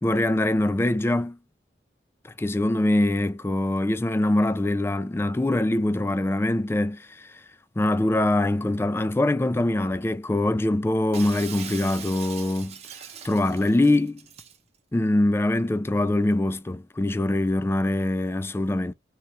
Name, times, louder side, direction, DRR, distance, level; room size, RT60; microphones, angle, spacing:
voice 1, 0.0-1.4 2.2-7.4 7.8-12.8 13.2-14.2 14.9-18.9, left 1 dB, 15° left, 0.3 m, -23 dB
Shatter, 11.1-14.6, right 7 dB, 35° right, 0.9 m, -41 dB
3.6 x 3.0 x 4.1 m
head